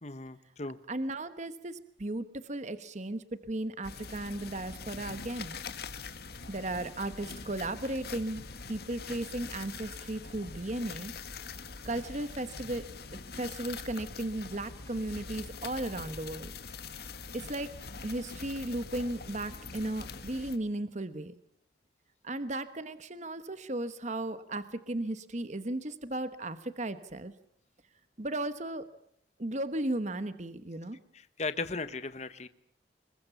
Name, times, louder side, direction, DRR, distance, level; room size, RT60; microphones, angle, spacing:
voice 1, 0.0-0.8 31.1-32.5, left 3 dB, 40° left, 12 dB, 1.2 m, -37 dB
voice 2, 0.9-5.6 6.5-8.4 8.7-11.1 11.8-12.9 13.4-16.5 17.3-17.7 18.0-21.3 22.2-27.3 28.2-28.9 29.4-31.0, right 1 dB, 40° right, 12 dB, 1.1 m, -35 dB
sound 1, 3.8-20.6, left 4 dB, 60° left, 1.9 m, -44 dB
26.5 x 22.5 x 7.1 m, 0.68 s
head